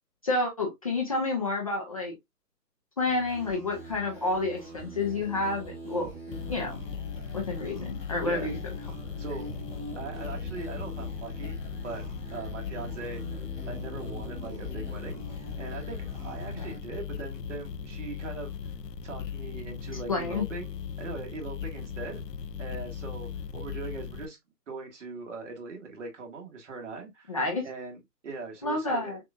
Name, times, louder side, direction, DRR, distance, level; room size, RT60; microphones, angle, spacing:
voice 1, 0.2-2.1 3.0-6.1 6.5-6.8 7.3-8.6 16.5-16.6 20.1-20.4 27.3-27.7 28.6-29.2, left 3 dB, 20° left, 0.6 m, -29 dB
sound 1, 3.1-16.8, right 1 dB, 10° right, 0.9 m, -43 dB
sound 2, 6.3-24.3, left 7 dB, 75° left, 0.8 m, -38 dB
voice 2, 8.2-8.5 9.2-9.5 9.9-11.6 11.8-12.0 12.3-13.4 13.7-15.2 15.6-18.7 19.0-20.7 21.0-22.2 22.6-24.4 24.7-27.4 27.6-29.1, right 3 dB, 45° right, 1.7 m, -40 dB
6.3 x 2.6 x 2.3 m
figure-of-eight pair, 145°, 49 cm